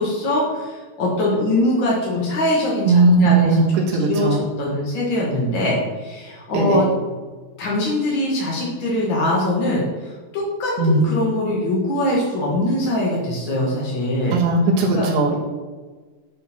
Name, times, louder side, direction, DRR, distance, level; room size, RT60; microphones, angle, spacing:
voice 1, 0.0-3.6 3.9-6.9 7.6-14.4 14.9-15.1, left 1 dB, 55° left, -4 dB, 1.3 m, -22 dB
voice 2, 2.9-3.6 3.9-4.4 6.5-6.9 10.8-11.0 14.3-15.4, right 3 dB, 80° right, -1 dB, 3.6 m, -17 dB
10.5 x 4.6 x 6.0 m, 1.4 s
omnidirectional pair, 4.6 m